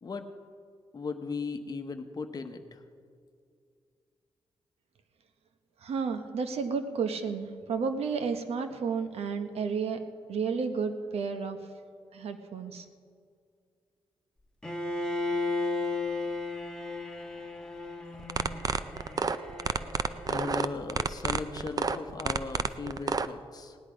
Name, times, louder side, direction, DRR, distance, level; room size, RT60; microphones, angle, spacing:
voice 1, 0.9-2.8 20.3-23.8, left 4 dB, 40° left, 7 dB, 1.0 m, -37 dB
voice 2, 5.8-10.0 10.3-11.6 12.1-12.8, right 5 dB, 85° right, 8 dB, 1.0 m, -32 dB
Bowed string instrument, 14.6-20.6, left 3 dB, 5° left, 1.3 m, -35 dB
sound 1, 18.2-23.3, right 5 dB, 40° right, 0.5 m, -29 dB
18.0 x 10.0 x 5.0 m, 2.2 s
cardioid pair, 105°, 10 cm